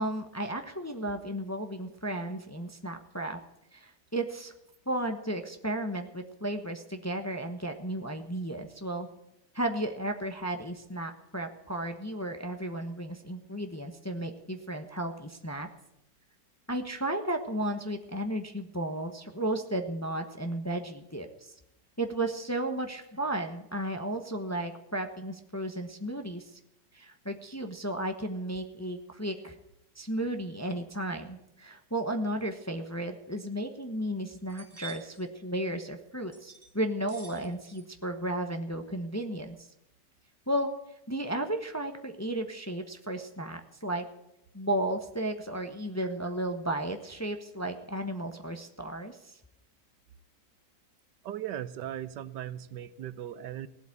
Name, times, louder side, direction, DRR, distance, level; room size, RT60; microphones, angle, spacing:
voice 1, 0.0-3.4 3.7-4.5 4.9-9.1 9.5-15.7 16.7-21.5 22.0-26.6 26.9-29.5 29.9-39.6 40.5-40.7 41.1-44.1 44.5-49.3, right 1 dB, 10° left, 5 dB, 0.9 m, -34 dB
sound 1, 33.3-33.4 33.8-33.9 34.3-35.2 36.3-36.7 37.1-37.8 38.1-38.5, right 5 dB, 25° right, 2.7 m, -48 dB
voice 2, 51.2-53.7, right 11 dB, 80° right, 15 dB, 1.4 m, -38 dB
17.5 x 8.2 x 8.6 m, 0.84 s
omnidirectional pair, 1.9 m